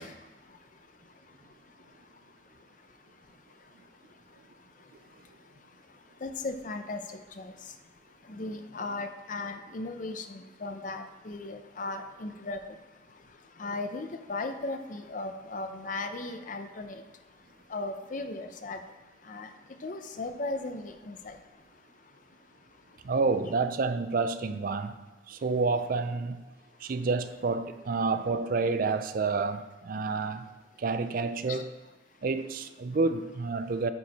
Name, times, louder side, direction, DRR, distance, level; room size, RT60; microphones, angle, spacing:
voice 1, 0.0-23.1 31.5-31.6, left 2 dB, 45° left, 7 dB, 0.6 m, -39 dB
voice 2, 23.0-25.0 25.3-26.4 26.8-30.4 30.8-31.7 32.2-33.9, right 4 dB, 50° right, 10 dB, 0.4 m, -29 dB
9.2 x 4.6 x 4.2 m, 1.2 s
head